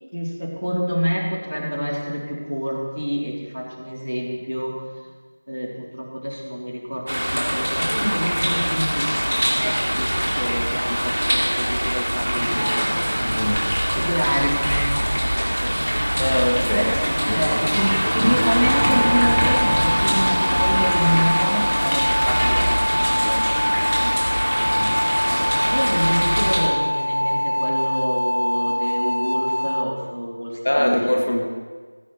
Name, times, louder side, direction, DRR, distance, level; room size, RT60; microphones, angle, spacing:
voice 1, 0.1-4.8 5.5-12.8 13.8-16.0 16.7-24.1 24.9-25.2 25.6-30.9, equal, 75° right, -2 dB, 3.3 m, -27 dB
sound 1, 7.1-26.6, equal, 40° right, 2.4 m, -22 dB
voice 2, 13.2-13.7 16.2-16.9 17.3-17.6 24.6-24.9 30.6-31.5, left 1 dB, 30° left, 1 dB, 1.1 m, -22 dB
sound 2, 18.6-29.8, left 1 dB, 50° left, 0.6 m, -24 dB
15.0 x 14.5 x 3.2 m, 1.4 s
figure-of-eight pair, 175°, 0 cm